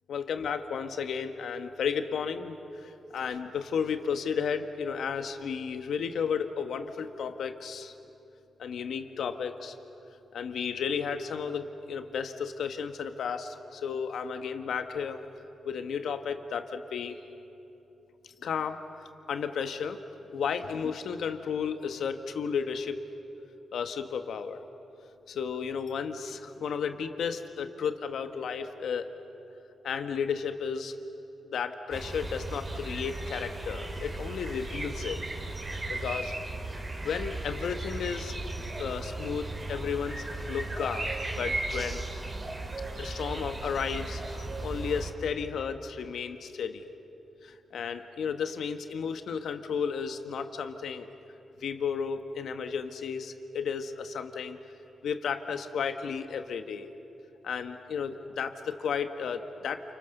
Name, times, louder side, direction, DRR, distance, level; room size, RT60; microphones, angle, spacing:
voice 1, 0.1-7.9 8.6-9.7 10.3-15.2 15.6-17.2 18.4-20.0 20.3-23.0 23.7-24.6 25.3-29.1 29.8-30.9 31.4-35.2 35.9-36.4 37.0-38.3 38.8-42.0 43.0-46.8 47.4-51.1 51.6-54.6 55.0-56.9 57.4-59.8, left 6 dB, 80° left, 7 dB, 1.5 m, -33 dB
sound 1, 31.9-45.1, right 2 dB, 30° right, 3.3 m, -36 dB
29.0 x 29.0 x 6.8 m, 3.0 s
cardioid pair, 105°, 0 cm